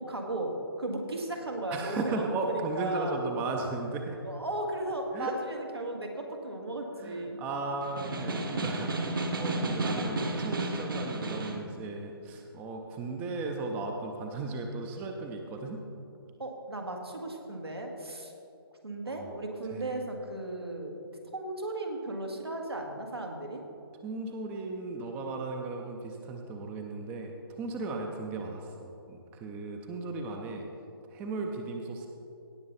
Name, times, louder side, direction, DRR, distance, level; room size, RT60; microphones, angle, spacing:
voice 1, 0.0-3.2 4.2-7.4 16.4-18.3 18.8-21.0 21.3-23.6 27.8-28.0, right 1 dB, 80° right, 1 dB, 1.9 m, -36 dB
voice 2, 1.7-4.2 5.1-5.4 7.0-15.8 19.1-19.3 19.7-19.9 24.0-30.7 31.1-32.1, right 3 dB, 10° right, 3 dB, 0.6 m, -36 dB
Snare drum, 7.8-11.7, right 2 dB, 60° right, 1.5 m, -32 dB
17.5 x 6.9 x 4.1 m, 2.6 s
figure-of-eight pair, 140°, 13 cm